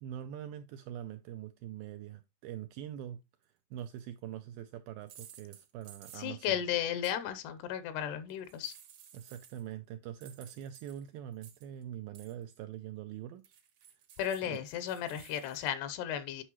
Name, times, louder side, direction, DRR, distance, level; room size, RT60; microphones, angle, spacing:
voice 1, 0.0-6.6 9.1-13.6 14.4-14.6, right 11 dB, 85° right, 2.1 m, -44 dB
sound 1, 3.8-4.0 5.0-6.5 7.0-7.1 8.3-9.7 10.2-11.8 12.2-12.4 13.4-15.7, right 9 dB, 65° right, 1.5 m, -56 dB
voice 2, 6.2-8.7 14.2-16.4, left 10 dB, 85° left, 2.9 m, -34 dB
9.9 x 5.5 x 3.0 m
omnidirectional pair, 4.7 m